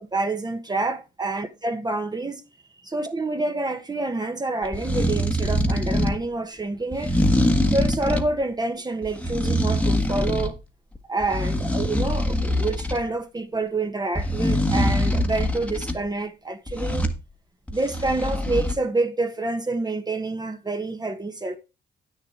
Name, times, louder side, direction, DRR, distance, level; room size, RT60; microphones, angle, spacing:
voice 1, 0.0-2.4 2.9-7.2 7.7-10.5 11.1-17.1 17.7-21.6, right 2 dB, 20° right, 1.1 m, -27 dB
sound 1, 4.6-6.2 6.9-8.3 9.0-10.6 10.9-13.0 14.1-16.0 16.7-17.2 17.7-18.7, left 1 dB, 5° left, 1.3 m, -23 dB
8.7 x 6.7 x 4.6 m
cardioid pair, 90°, 20 cm